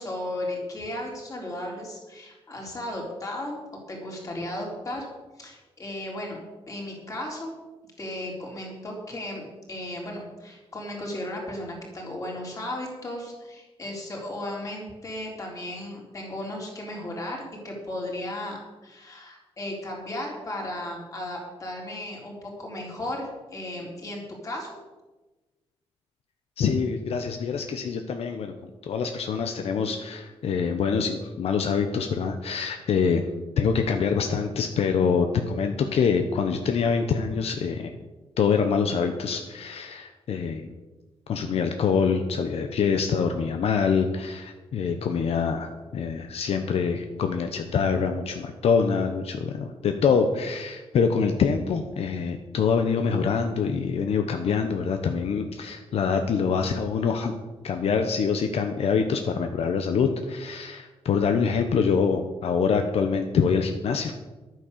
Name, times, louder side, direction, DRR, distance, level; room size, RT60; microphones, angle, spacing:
voice 1, 0.0-3.6 3.9-5.1 5.4-6.4 6.7-7.5 8.0-24.8, left 1 dB, 30° left, -1 dB, 3.9 m, -35 dB
voice 2, 26.6-28.5 28.8-33.2 33.6-37.9 38.4-40.7 41.3-57.3 57.6-64.1, left 6 dB, 75° left, 6 dB, 1.0 m, -25 dB
11.5 x 9.4 x 6.8 m, 1.2 s
wide cardioid pair, 170°, 10 cm